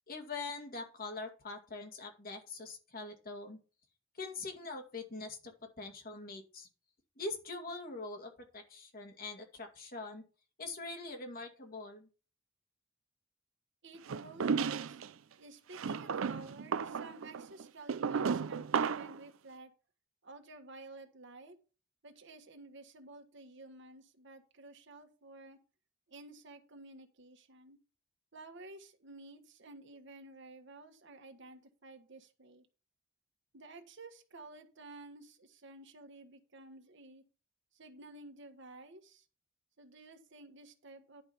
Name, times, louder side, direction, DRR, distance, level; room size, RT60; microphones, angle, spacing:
voice 1, 0.1-3.6 4.2-6.7 7.2-10.2 10.6-12.1, left 3 dB, 50° left, 3 dB, 2.2 m, -43 dB
voice 2, 13.8-15.0 15.4-19.7 20.2-21.5 22.0-25.6 26.1-27.8 28.3-32.7 33.5-37.2 37.7-39.2 39.8-41.2, right 2 dB, 65° right, 6 dB, 1.4 m, -52 dB
sound 1, 14.1-15.1 15.7-19.2, right 6 dB, 85° right, 0.5 m, -34 dB
11.0 x 5.1 x 5.6 m, 0.35 s
head